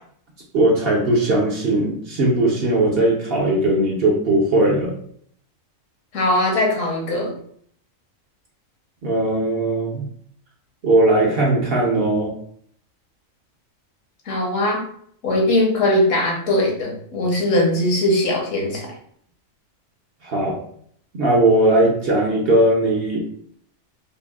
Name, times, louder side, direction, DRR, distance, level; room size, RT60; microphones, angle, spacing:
voice 1, 0.5-5.0 9.0-10.1 10.8-12.3 20.2-20.6 21.1-23.2, right 1 dB, 55° right, -2 dB, 0.9 m, -18 dB
voice 2, 6.1-7.3 14.3-14.8 15.2-18.9, left 1 dB, 70° left, 0 dB, 1.3 m, -20 dB
5.1 x 2.2 x 2.3 m, 0.62 s
omnidirectional pair, 1.4 m